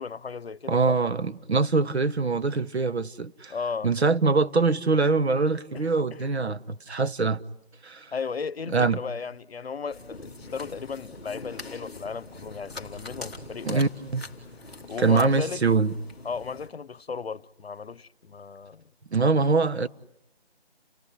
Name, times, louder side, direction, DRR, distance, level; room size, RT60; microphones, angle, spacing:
voice 1, 0.0-1.0 3.5-3.9 5.7-6.3 8.1-13.9 14.9-15.6 16.2-18.8, left 5 dB, 70° left, 0.9 m, -35 dB
voice 2, 0.7-3.5 3.8-7.4 7.8-8.1 8.7-9.0 13.6-14.2 15.0-15.9 19.1-19.9, right 4 dB, 80° right, 1.2 m, -23 dB
sound 1, 9.9-16.7, left 3 dB, ahead, 1.8 m, -43 dB
30.0 x 17.5 x 9.9 m
figure-of-eight pair, 165°, 32 cm